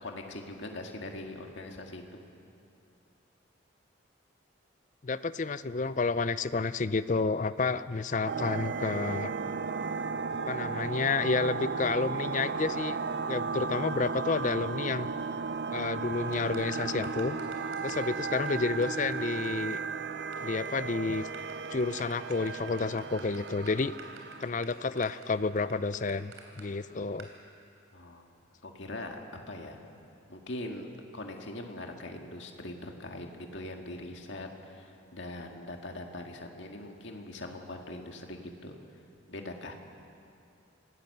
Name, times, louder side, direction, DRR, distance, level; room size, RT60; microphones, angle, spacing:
voice 1, 0.0-2.0 27.9-28.3 28.6-29.2 29.5-29.8 30.3-38.8 39.3-39.8, left 1 dB, 65° left, 2 dB, 1.9 m, -41 dB
voice 2, 5.0-9.3 10.4-13.0 13.3-15.1 15.7-17.4 17.8-19.8 20.4-21.3 21.7-23.9 24.4-27.3, left 4 dB, 40° left, 14 dB, 0.5 m, -30 dB
sound 1, 8.3-24.5, right 5 dB, 55° right, 0.6 m, -35 dB
sound 2, 16.3-18.0 18.3-18.5 18.8-18.9 19.1-19.2 19.4-19.5 19.8-20.3 20.6-20.8 21.1-26.6 27.2-27.3, right 4 dB, 80° right, 3.4 m, -50 dB
26.0 x 17.5 x 6.7 m, 2.6 s
head